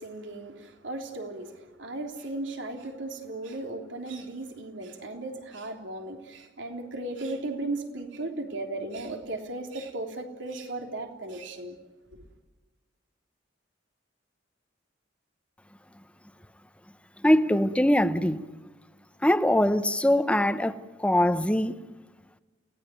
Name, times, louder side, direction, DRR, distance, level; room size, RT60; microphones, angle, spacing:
voice 1, 0.0-11.8 12.1-12.3, right 2 dB, 80° right, 3.5 m, -36 dB
voice 2, 17.2-18.4 19.2-21.8, left 1 dB, 5° left, 0.9 m, -22 dB
29.0 x 18.0 x 9.4 m
head